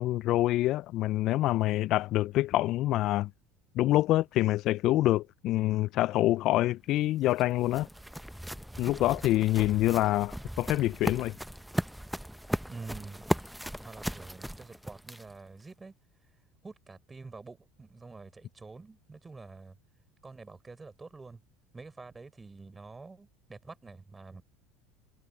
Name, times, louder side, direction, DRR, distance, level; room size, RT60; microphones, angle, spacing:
voice 1, 0.0-3.3 3.8-7.9 8.8-11.3, left 15 dB, 60° left, 0.3 m, -26 dB
sound 1, 6.9-15.5, equal, ahead, 0.8 m, -37 dB
voice 2, 12.7-13.2 13.8-15.9 16.6-19.8 20.2-21.4 21.7-24.4, right 3 dB, 20° right, 4.8 m, -47 dB
hypercardioid pair, 85°, 0 cm